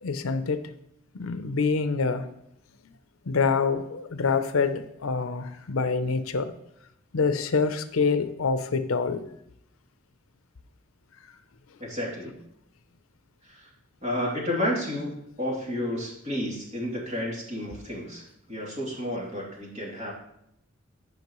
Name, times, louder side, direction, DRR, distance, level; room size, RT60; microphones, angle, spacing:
voice 1, 0.0-0.7 1.1-2.3 3.3-6.5 7.1-9.3, left 4 dB, 80° left, 0.6 m, -26 dB
voice 2, 11.8-12.3 13.4-13.7 14.0-18.2 18.5-20.1, left 1 dB, 35° right, 2.9 m, -31 dB
15.0 x 5.3 x 3.0 m
head